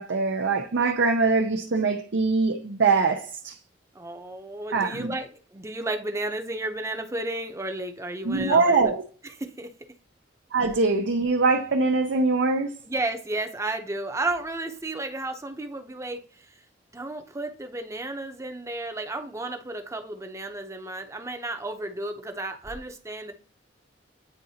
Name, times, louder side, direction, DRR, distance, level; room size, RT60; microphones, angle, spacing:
voice 1, 0.0-3.6 4.7-5.1 8.2-9.0 10.5-12.7, right 4 dB, 70° right, 0.6 m, -23 dB
voice 2, 3.9-8.9 9.4-9.7 12.8-16.6 16.9-23.3, right 2 dB, 15° right, 0.7 m, -33 dB
9.1 x 3.8 x 2.8 m
head